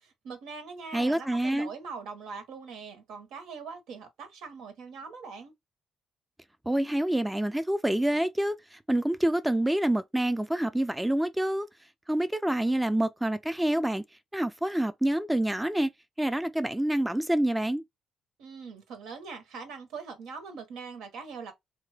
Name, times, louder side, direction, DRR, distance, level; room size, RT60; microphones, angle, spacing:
voice 1, 0.0-5.5 18.4-21.5, right 5 dB, 85° right, 0.8 m, -42 dB
voice 2, 0.9-1.7 6.7-11.7 12.1-14.0 14.3-15.9 16.2-17.8, right 1 dB, 10° right, 0.3 m, -27 dB
2.8 x 2.2 x 3.2 m
cardioid pair, 90°, 0 cm